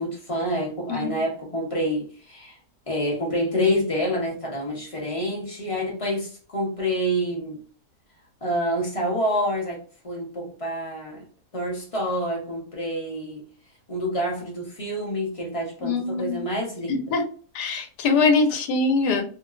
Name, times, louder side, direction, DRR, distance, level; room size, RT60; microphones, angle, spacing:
voice 1, 0.0-2.6 2.9-7.6 8.4-9.8 10.0-11.2 11.5-13.4 13.9-17.1, equal, 30° left, 0.6 m, -27 dB
voice 2, 15.8-16.4 16.9-17.2 17.5-19.2, left 4 dB, 80° left, 1.2 m, -22 dB
2.8 x 2.2 x 2.3 m
omnidirectional pair, 1.8 m